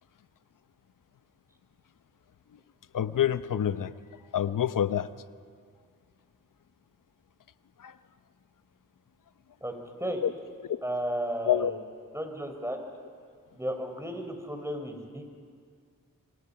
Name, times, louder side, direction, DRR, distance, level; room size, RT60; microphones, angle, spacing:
voice 1, 2.9-3.9 4.3-5.1 7.8-7.9 10.2-10.3 10.6-10.8 11.5-11.7, left 10 dB, 70° left, 13 dB, 0.9 m, -27 dB
voice 2, 10.8-11.8 12.1-12.8 13.5-15.2, right 1 dB, 10° right, 4 dB, 5.5 m, -33 dB
28.0 x 25.0 x 5.9 m, 2.1 s
cardioid pair, 40°, 33 cm